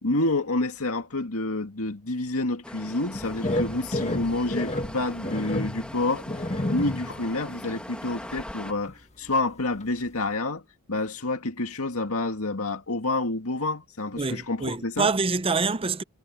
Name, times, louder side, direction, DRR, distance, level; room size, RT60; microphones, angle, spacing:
voice 1, 0.0-6.3 6.7-10.6 10.9-15.1, left 2 dB, 70° left, 2.2 m, -28 dB
sound 1, 2.6-8.7, left 1 dB, 5° left, 1.9 m, -41 dB
sound 2, 3.1-7.3 7.6-7.8 8.2-9.0 9.3-9.4 9.8-9.9, left 1 dB, 30° left, 1.8 m, -31 dB
voice 2, 14.1-16.0, right 4 dB, 25° right, 0.7 m, -26 dB
head